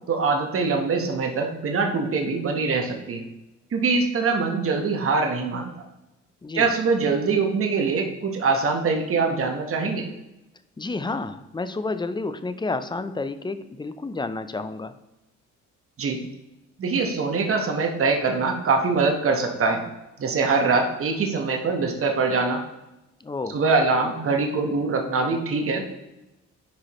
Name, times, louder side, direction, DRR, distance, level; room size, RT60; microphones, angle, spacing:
voice 1, 0.1-3.2 3.7-5.9 6.5-10.1 16.0-16.2 16.8-19.8 20.2-22.6 23.5-25.8, right 4 dB, 45° right, 3 dB, 1.3 m, -23 dB
voice 2, 10.8-14.9 23.2-23.6, left 3 dB, 15° left, 11 dB, 0.5 m, -30 dB
10.5 x 4.7 x 3.1 m, 0.96 s
cardioid pair, 90°, 30 cm